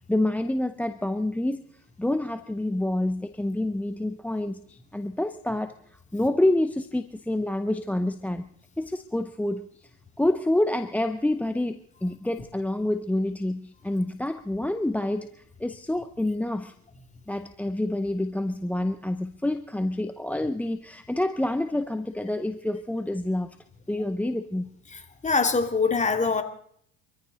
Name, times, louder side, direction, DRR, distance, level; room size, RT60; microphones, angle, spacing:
voice 1, 0.1-1.6 2.0-5.8 6.1-8.5 8.8-9.9 10.2-15.3 15.6-16.7 17.3-23.6 23.9-24.7, left 1 dB, 5° left, 12 dB, 0.7 m, -27 dB
voice 2, 24.9-26.4, left 4 dB, 20° left, 5 dB, 2.3 m, -24 dB
24.0 x 14.0 x 4.0 m, 0.65 s
supercardioid pair, 90°, 34 cm